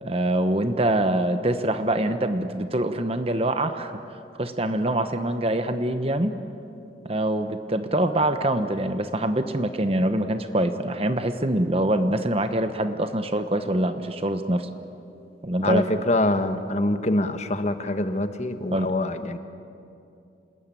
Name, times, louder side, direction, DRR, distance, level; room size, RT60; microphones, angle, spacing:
voice 1, 0.0-6.4 7.0-14.7 15.4-15.9 18.7-19.0, right 1 dB, 30° right, 8 dB, 1.0 m, -24 dB
voice 2, 15.6-19.4, left 1 dB, 35° left, 9 dB, 1.3 m, -25 dB
28.0 x 20.5 x 9.1 m, 2.6 s
head